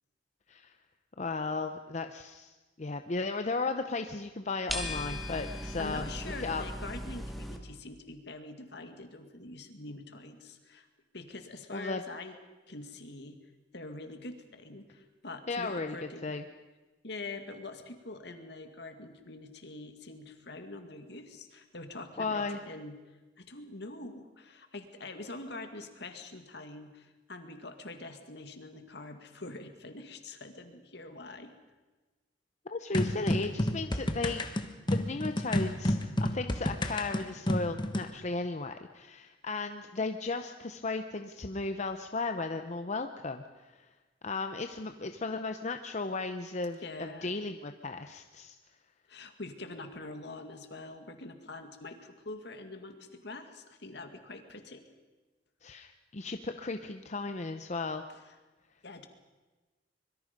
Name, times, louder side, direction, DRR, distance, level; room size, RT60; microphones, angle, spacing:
voice 1, 1.2-6.6 11.7-12.0 15.5-15.9 16.2-16.4 22.2-22.6 32.7-34.4 34.9-43.9 44.2-48.6 55.6-58.0, left 3 dB, 40° left, 7 dB, 0.8 m, -35 dB
sound 1, 4.7-7.6, left 1 dB, ahead, 2.1 m, -38 dB
voice 2, 4.8-5.2 5.4-10.9 11.1-12.4 12.7-13.4 13.7-16.3 17.0-22.9 23.4-31.5 46.8-47.3 49.1-54.8 58.1-58.2 58.8-59.1, left 2 dB, 65° left, 7 dB, 2.2 m, -44 dB
sound 2, 32.9-38.1, left 1 dB, 25° left, 1.4 m, -30 dB
25.0 x 22.5 x 5.3 m, 1.2 s
head